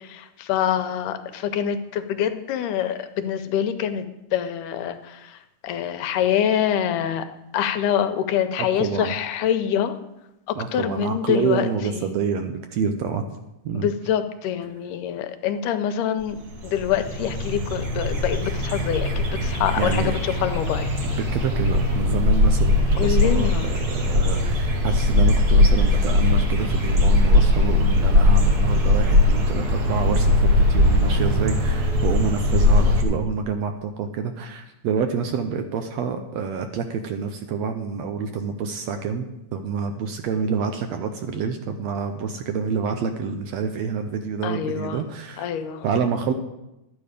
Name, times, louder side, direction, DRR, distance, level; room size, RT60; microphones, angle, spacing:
voice 1, 0.0-4.0 4.3-7.3 7.5-10.0 10.5-12.1 13.7-20.9 23.0-23.7 44.4-45.0 45.4-45.9, left 9 dB, 85° left, 9 dB, 2.3 m, -25 dB
voice 2, 8.6-9.1 10.6-13.2 13.6-13.9 19.8-20.2 21.1-45.5 45.8-46.3, right 5 dB, 75° right, 6 dB, 1.7 m, -27 dB
sound 1, 16.2-16.3 16.5-33.0, left 2 dB, 50° right, 1.2 m, -20 dB
12.5 x 9.3 x 5.1 m, 0.91 s
omnidirectional pair, 3.7 m